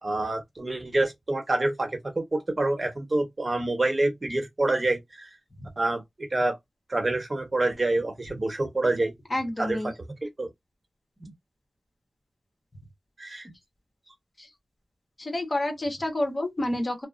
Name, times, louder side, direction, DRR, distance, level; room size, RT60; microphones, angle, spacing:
voice 1, 0.0-5.3 5.8-6.6 6.9-9.1 9.6-9.9 10.2-10.5 13.2-13.5, right 2 dB, 45° right, 0.9 m, -27 dB
voice 2, 9.3-9.9 14.4-14.5 15.2-17.1, left 1 dB, 45° left, 1.0 m, -29 dB
2.8 x 2.0 x 2.4 m
cardioid pair, 45°, 0 cm